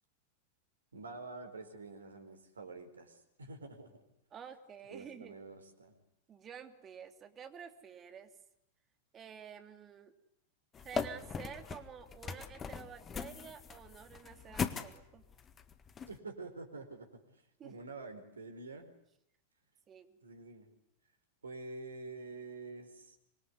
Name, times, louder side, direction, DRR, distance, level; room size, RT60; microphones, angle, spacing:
voice 1, 0.9-4.0 4.9-6.0 16.1-18.9 20.2-20.7 21.4-23.2, right 3 dB, 75° right, 8 dB, 4.4 m, -48 dB
voice 2, 4.3-5.4 6.3-8.3 9.1-10.1 10.8-15.2 17.6-17.7 19.9-20.2, right 7 dB, 25° right, 7 dB, 2.8 m, -50 dB
sound 1, 10.7-16.2, left 6 dB, 20° left, 1.7 m, -40 dB
25.5 x 22.5 x 9.7 m, 0.78 s
figure-of-eight pair, 90°, 0 cm